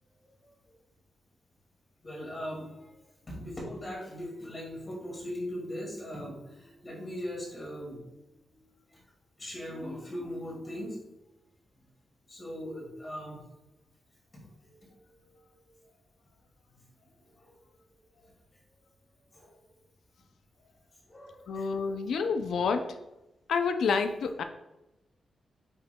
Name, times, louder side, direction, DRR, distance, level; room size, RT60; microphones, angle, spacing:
voice 1, 2.0-2.9 3.3-8.0 8.5-8.6 8.9-9.0 9.4-11.0 12.3-13.4 14.3-15.9 17.4-17.5 18.2-18.3 19.3-19.5 21.1-21.7 22.0-22.1, equal, 25° left, -3 dB, 2.2 m, -40 dB
voice 2, 21.5-23.0 23.5-24.4, left 5 dB, 80° left, 7 dB, 0.4 m, -28 dB
9.1 x 5.6 x 2.3 m, 0.95 s
wide cardioid pair, 165°, 0 cm